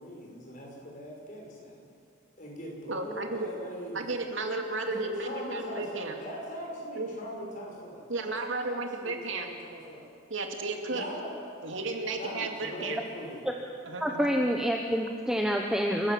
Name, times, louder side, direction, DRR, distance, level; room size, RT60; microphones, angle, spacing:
voice 1, 0.0-1.9 2.4-4.1 4.9-10.1 10.9-11.4 12.1-13.5, equal, 40° left, -1 dB, 5.7 m, -40 dB
voice 2, 2.9-3.5 3.9-6.1 7.0-7.1 7.4-7.5 8.1-9.5 10.3-11.0 11.6-13.0 13.8-14.3, right 3 dB, 70° right, 3 dB, 2.4 m, -33 dB
voice 3, 14.0-16.1, equal, 5° right, 1 dB, 1.1 m, -27 dB
28.0 x 15.5 x 7.6 m, 2.4 s
head